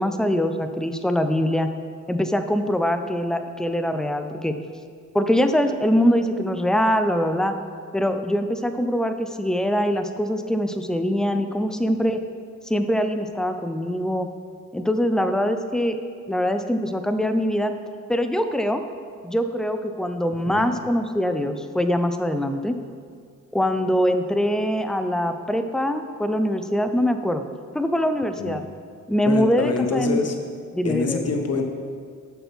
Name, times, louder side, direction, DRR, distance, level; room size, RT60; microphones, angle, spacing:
voice 1, 0.0-1.7 2.1-4.6 5.1-7.5 7.9-12.2 12.7-14.3 14.7-16.0 16.3-17.7 18.1-18.8 19.2-22.8 23.5-27.4 27.7-28.6 29.1-30.2 30.7-31.3, equal, ahead, 8 dB, 0.6 m, -23 dB
voice 2, 29.3-30.3 30.8-31.6, left 4 dB, 45° left, 4 dB, 1.2 m, -25 dB
6.8 x 5.7 x 6.1 m, 2.1 s
hypercardioid pair, 50°, 36 cm